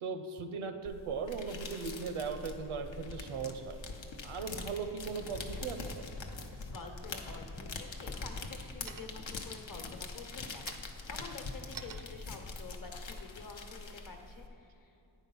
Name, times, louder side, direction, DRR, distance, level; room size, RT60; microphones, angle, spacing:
voice 1, 0.0-3.8 4.2-6.1, right 5 dB, 75° right, 8 dB, 0.7 m, -38 dB
sound 1, 0.8-14.5, left 3 dB, 65° left, 0.8 m, -43 dB
voice 2, 6.4-15.0, left 4 dB, 40° left, 3 dB, 1.1 m, -49 dB
sound 2, 8.9-9.4 9.9-14.3, right 8 dB, 45° right, 0.5 m, -51 dB
9.1 x 4.1 x 5.4 m, 2.7 s
cardioid pair, 55°, 50 cm